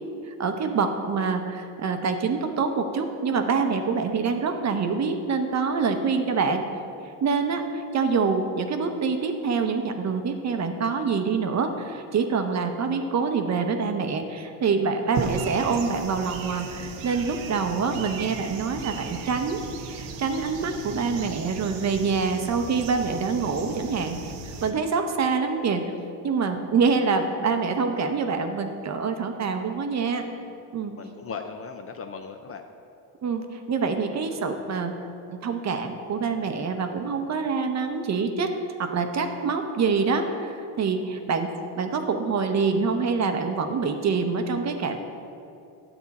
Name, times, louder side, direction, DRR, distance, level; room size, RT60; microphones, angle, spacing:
voice 1, 0.2-6.7 7.2-25.8 26.2-30.2 30.7-30.9 33.2-34.9 35.3-38.5 38.8-45.0, right 5 dB, 35° right, 6 dB, 0.8 m, -26 dB
sound 1, 15.1-24.7, right 4 dB, 80° right, 1.0 m, -36 dB
voice 2, 31.0-32.6, left 5 dB, 30° left, 6 dB, 0.5 m, -37 dB
9.7 x 8.0 x 4.1 m, 2.7 s
cardioid pair, 115°, 45 cm